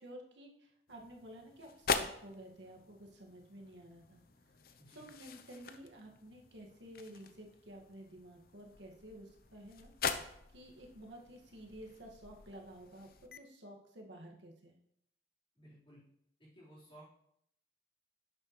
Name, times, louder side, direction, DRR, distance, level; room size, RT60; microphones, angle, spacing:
voice 1, 0.0-4.2 4.9-9.9 10.5-13.1 13.3-14.8, right 1 dB, 90° right, 0 dB, 1.8 m, -52 dB
sound 1, 0.9-13.4, left 5 dB, 55° left, 0.6 m, -43 dB
voice 2, 4.8-5.1 15.5-16.0 16.4-17.1, right 1 dB, 30° left, -8 dB, 4.0 m, -57 dB
10.5 x 7.8 x 3.1 m, 0.73 s
head